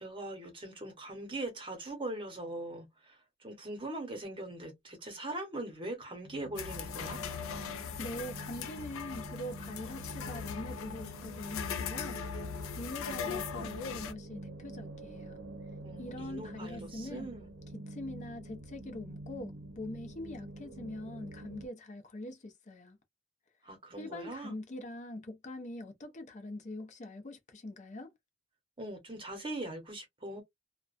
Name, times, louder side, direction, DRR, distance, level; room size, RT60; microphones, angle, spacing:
voice 1, 0.0-7.2 15.8-17.5 23.6-24.6 28.8-30.4, right 2 dB, 25° right, 0.9 m, -41 dB
alien sky, 6.2-21.7, right 1 dB, 75° right, 0.6 m, -47 dB
sound 1, 6.6-14.1, left 6 dB, 85° left, 0.4 m, -39 dB
voice 2, 8.0-12.2 12.8-15.4 16.0-17.3 17.7-23.0 24.0-28.1, left 1 dB, 35° left, 0.5 m, -43 dB
2.3 x 2.2 x 2.4 m
head